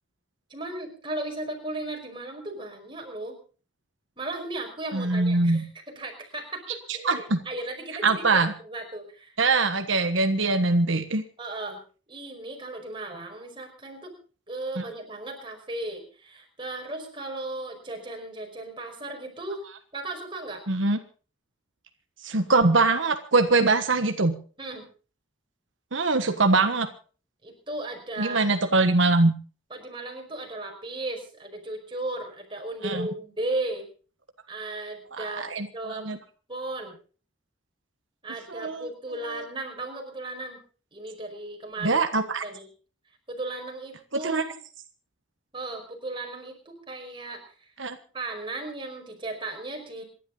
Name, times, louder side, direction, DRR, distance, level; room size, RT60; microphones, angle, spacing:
voice 1, 0.5-3.4 4.2-9.4 11.4-11.8 12.1-14.1 14.5-19.6 19.9-20.6 24.6-24.9 27.4-28.5 29.7-33.9 34.5-35.5 35.7-36.1 36.5-37.0 38.2-40.6 40.9-42.7 43.3-44.5 45.5-47.7 48.1-50.0, right 2 dB, 25° right, 2 dB, 5.2 m, -36 dB
voice 2, 4.9-5.6 7.0-7.4 8.0-8.5 9.4-11.2 14.8-14.9 20.7-21.0 22.2-24.3 25.9-26.9 28.2-29.3 32.8-33.1 35.1-36.2 38.5-38.9 39.2-39.4 41.8-42.4 44.2-44.4 47.8-48.0, right 3 dB, 75° right, 7 dB, 1.4 m, -23 dB
27.5 x 11.5 x 3.9 m, 0.39 s
head